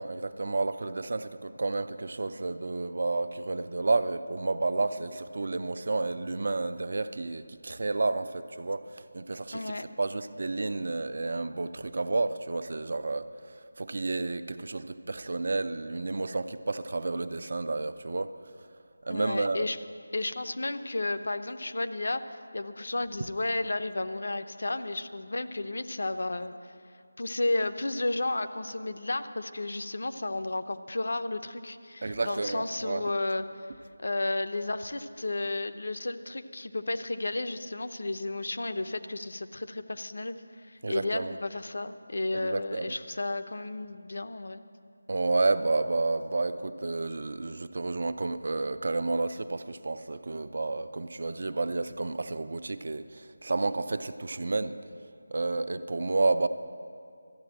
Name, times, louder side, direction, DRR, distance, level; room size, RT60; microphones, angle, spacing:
voice 1, 0.0-13.3 13.8-18.3 19.0-19.7 32.0-33.1 40.8-41.3 42.3-43.0 45.1-54.8 55.3-56.5, right 3 dB, 45° right, 12 dB, 0.5 m, -31 dB
voice 2, 9.5-9.9 19.1-19.8 20.1-26.5 27.2-33.7 34.0-40.3 40.7-44.6, left 2 dB, 55° left, 9 dB, 0.7 m, -32 dB
13.5 x 8.5 x 8.8 m, 2.4 s
figure-of-eight pair, 180°, 0 cm